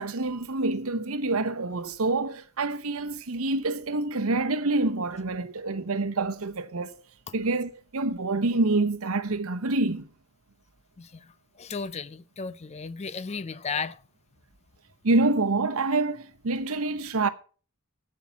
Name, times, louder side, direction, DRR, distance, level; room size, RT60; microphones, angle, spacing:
voice 1, 0.0-7.0 7.3-10.0 15.0-17.3, right 2 dB, 70° right, 0.9 m, -27 dB
voice 2, 11.0-14.0, left 5 dB, 30° left, 0.5 m, -35 dB
14.5 x 5.7 x 5.8 m
head